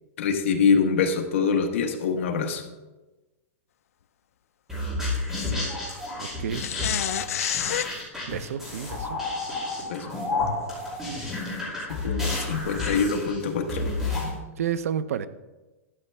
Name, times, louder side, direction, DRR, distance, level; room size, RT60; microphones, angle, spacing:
voice 1, 0.2-2.6 9.9-10.2 12.0-13.9, left 5 dB, 60° left, 5 dB, 1.2 m, -24 dB
sound 1, 4.7-14.3, left 2 dB, 5° right, 2.4 m, -30 dB
sound 2, 5.3-5.5 6.5-7.9 9.8-9.9 10.5-10.6 12.8-13.0, left 10 dB, 85° left, 0.4 m, -29 dB
voice 2, 6.2-6.6 8.3-9.2 14.6-15.3, right 9 dB, 90° right, 14 dB, 0.6 m, -30 dB
12.0 x 8.2 x 3.4 m, 1.1 s
supercardioid pair, 175°, 8 cm